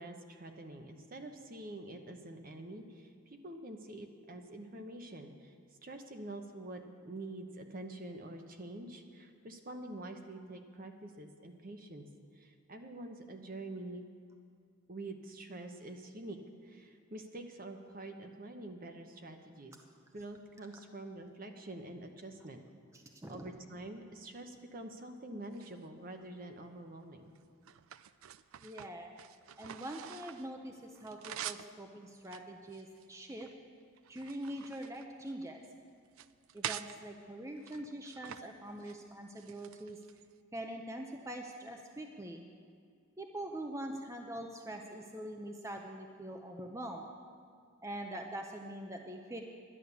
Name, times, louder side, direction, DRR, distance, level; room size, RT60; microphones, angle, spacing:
voice 1, 0.0-5.5 5.8-12.1 12.3-14.1 14.9-19.7 20.1-22.6 23.3-27.3, right 2 dB, 40° right, 5 dB, 0.9 m, -46 dB
voice 2, 22.9-23.5 28.6-29.1 29.6-33.5 34.1-35.6 36.5-40.0 40.5-42.4 43.2-47.1 47.8-49.4, right 1 dB, 15° right, 3 dB, 0.6 m, -43 dB
sound 1, 25.4-26.4 27.0-30.5 30.8-31.7 32.2-33.5 34.0-35.7 36.1-37.0 37.6-38.4 38.7-39.0 39.4-40.3, right 10 dB, 70° right, 0.4 m, -46 dB
11.0 x 10.0 x 6.9 m, 2.2 s
head